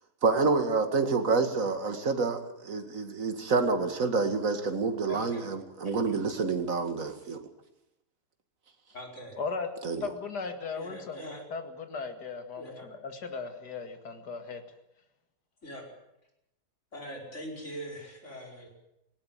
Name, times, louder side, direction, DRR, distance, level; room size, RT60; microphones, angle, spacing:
voice 1, 0.2-7.4 9.8-10.1, right 4 dB, 50° right, 7 dB, 2.4 m, -28 dB
voice 2, 5.1-5.5 5.8-6.2 8.9-9.4 10.8-11.5 12.6-12.9 15.6-15.8 16.9-18.7, equal, 45° left, 1 dB, 5.4 m, -42 dB
voice 3, 9.4-9.7 10.0-11.2 11.5-14.6, left 5 dB, 70° left, 6 dB, 2.7 m, -37 dB
19.0 x 17.5 x 9.0 m, 0.85 s
omnidirectional pair, 1.8 m